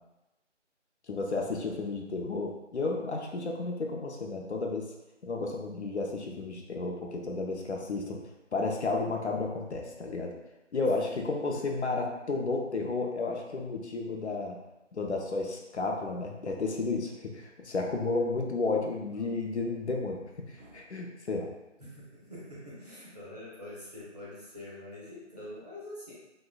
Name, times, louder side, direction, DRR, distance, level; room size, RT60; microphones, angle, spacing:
voice 1, 1.1-4.9 5.2-8.2 8.5-10.4 10.7-14.6 14.9-21.5, left 3 dB, 65° left, 1 dB, 0.5 m, -32 dB
voice 2, 21.8-26.1, left 1 dB, 35° right, -9 dB, 0.7 m, -45 dB
2.9 x 2.1 x 2.3 m, 0.98 s
figure-of-eight pair, 160°, 37 cm